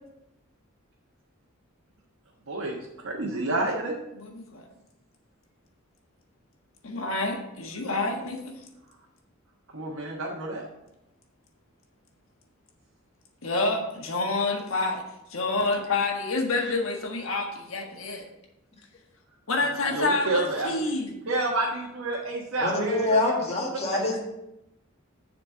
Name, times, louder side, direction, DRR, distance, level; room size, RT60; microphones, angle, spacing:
voice 1, 2.5-2.8 3.0-4.0 9.7-10.6 19.9-20.9 21.3-23.4, right 2 dB, 80° right, -3 dB, 1.3 m, -29 dB
voice 2, 4.2-4.7 6.8-8.5 13.4-15.0 15.3-18.2 19.5-21.1, left 3 dB, 75° left, 2 dB, 1.4 m, -28 dB
voice 3, 22.6-24.2, left 2 dB, 30° left, -2 dB, 1.8 m, -25 dB
7.3 x 4.3 x 6.7 m, 0.86 s
head